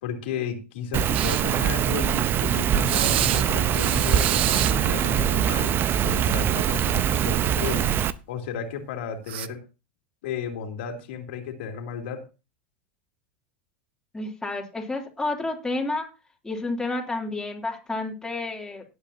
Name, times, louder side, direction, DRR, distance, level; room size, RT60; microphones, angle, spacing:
voice 1, 0.0-5.7 6.0-7.9 8.3-9.6 10.2-12.2, left 7 dB, 75° left, 3 dB, 2.8 m, -33 dB
Rain, 0.9-8.1, right 9 dB, 35° right, 0.7 m, -23 dB
sound 1, 1.1-1.4 2.9-3.4 3.7-4.7 6.1-6.3 6.6-6.7 9.3-9.5, right 13 dB, 75° right, 0.7 m, -27 dB
voice 2, 14.1-16.1 16.4-18.8, left 2 dB, 10° left, 0 dB, 2.9 m, -30 dB
18.0 x 8.2 x 2.8 m, 0.28 s
hypercardioid pair, 105°, 6 cm